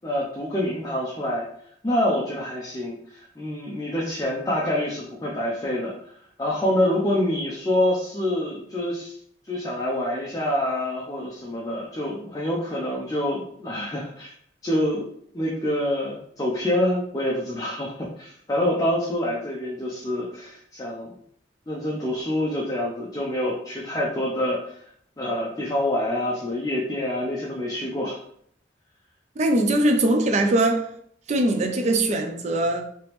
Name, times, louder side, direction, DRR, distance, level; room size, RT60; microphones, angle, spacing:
voice 1, 0.0-1.5 1.8-9.1 9.5-14.3 14.6-15.1 15.3-21.1 21.7-24.8 25.2-28.2, left 1 dB, 20° left, 0.5 m, -26 dB
voice 2, 29.4-30.9 31.3-32.8, right 1 dB, 40° right, 0.4 m, -21 dB
3.3 x 2.9 x 3.0 m
head